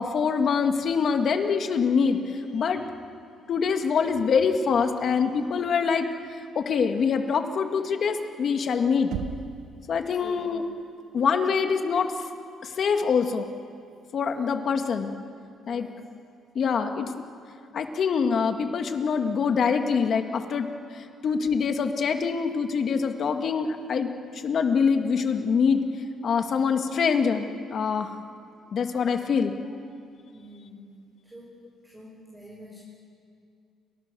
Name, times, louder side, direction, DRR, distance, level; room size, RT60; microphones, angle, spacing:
voice 1, 0.0-2.8 3.5-6.1 6.6-9.1 9.9-10.6 11.1-12.1 12.6-13.5 14.1-15.1 15.7-15.9 16.6-17.1 17.7-20.7 20.9-24.1 24.4-25.8 26.2-28.1 28.7-29.5, left 6 dB, 45° left, 5 dB, 2.1 m, -24 dB
Knock, 9.1-9.8, right 9 dB, 80° right, 1.4 m, -33 dB
voice 2, 10.2-10.5 14.3-14.5 15.7-16.1 30.3-30.9 31.2-31.5 31.9-32.8, equal, 10° right, -5 dB, 6.4 m, -46 dB
29.5 x 26.0 x 7.0 m, 2.5 s
cardioid pair, 145°, 0 cm